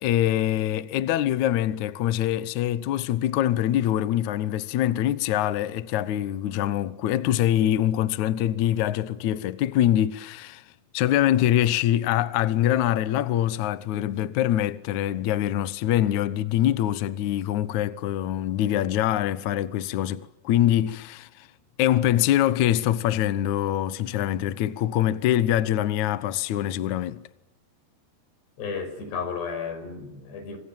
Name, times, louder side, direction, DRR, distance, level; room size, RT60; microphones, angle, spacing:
voice 1, 0.0-10.6 10.9-21.5 21.8-27.3, left 12 dB, 85° left, 1.6 m, -24 dB
voice 2, 28.6-30.6, left 5 dB, 70° left, 7.7 m, -33 dB
29.5 x 26.5 x 7.3 m
omnidirectional pair, 5.1 m